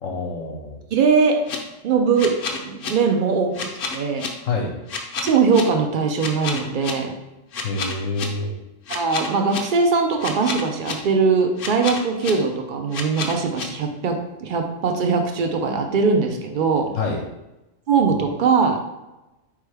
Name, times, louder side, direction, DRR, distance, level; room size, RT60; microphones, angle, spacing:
voice 1, 0.0-0.8 4.4-4.7 7.6-8.5 17.0-17.2, left 3 dB, 80° left, -1 dB, 1.1 m, -26 dB
voice 2, 0.9-1.4 1.8-4.3 5.2-7.1 8.9-16.9 17.9-18.8, right 5 dB, 60° right, 4 dB, 0.5 m, -21 dB
sound 1, 1.2-1.6 2.2-2.9 3.5-4.3 4.9-5.6 6.2-6.9 7.5-8.2 8.9-9.6 10.2-10.9 11.6-12.3 12.9-13.6, left 5 dB, 55° left, 0.7 m, -29 dB
4.4 x 3.3 x 3.3 m, 0.99 s
omnidirectional pair, 1.3 m